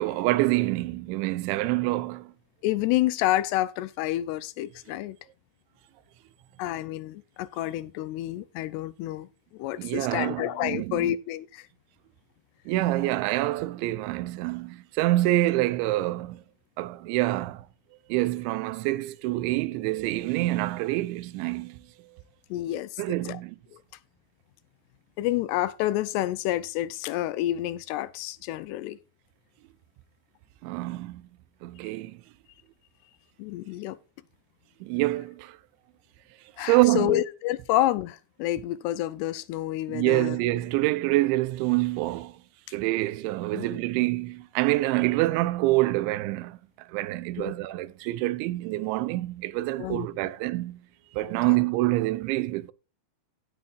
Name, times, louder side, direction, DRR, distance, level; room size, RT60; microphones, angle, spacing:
voice 1, 0.0-2.3 9.8-11.2 12.7-16.4 16.8-17.7 18.1-21.8 23.0-23.6 30.6-31.2 31.6-32.2 34.8-35.6 36.6-37.1 39.9-42.4 42.7-50.8 51.1-52.7, right 18 dB, 90° right, 3.1 m, -26 dB
voice 2, 2.6-5.2 6.6-11.7 22.5-23.4 23.7-23.8 25.2-29.0 33.4-34.0 36.6-40.4 43.5-43.8 47.4-47.5 49.8-50.1 51.5-51.6, left 14 dB, 80° left, 2.5 m, -29 dB
16.5 x 7.4 x 2.5 m
omnidirectional pair, 5.2 m